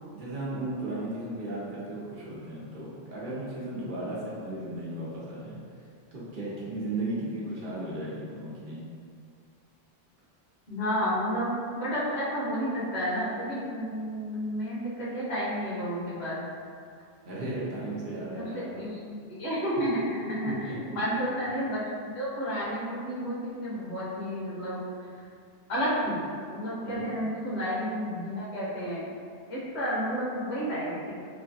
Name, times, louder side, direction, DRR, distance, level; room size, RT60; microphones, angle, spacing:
voice 1, 0.1-5.6 6.1-8.8 17.2-18.8 19.8-19.9 20.4-20.8 26.8-27.2, right 2 dB, 60° right, -7 dB, 0.7 m, -35 dB
voice 2, 10.7-16.4 18.4-24.8 25.7-29.1 29.5-31.1, equal, 80° left, -9 dB, 1.2 m, -31 dB
3.0 x 2.3 x 2.6 m, 2.3 s
omnidirectional pair, 1.1 m